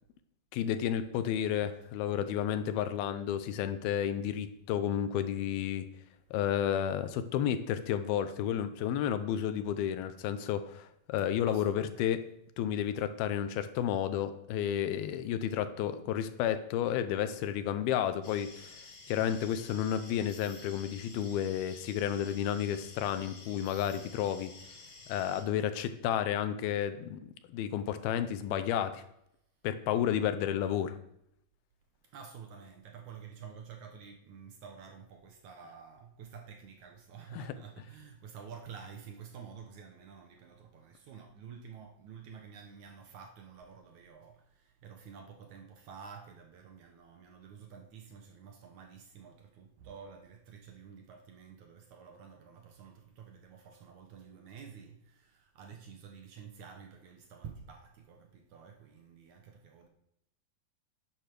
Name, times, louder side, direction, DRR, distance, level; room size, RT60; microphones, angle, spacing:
voice 1, 0.5-5.9 6.3-12.2 12.6-18.8 19.1-24.5 25.1-27.2 27.5-29.0 29.6-31.0 37.3-37.5, left 10 dB, 85° left, 11 dB, 2.7 m, -31 dB
voice 2, 11.5-12.0 32.1-59.9, right 6 dB, 65° right, 3 dB, 2.3 m, -50 dB
sound 1, 18.2-25.4, left 3 dB, 50° left, 3.4 m, -51 dB
10.0 x 8.6 x 6.1 m, 0.78 s
omnidirectional pair, 4.2 m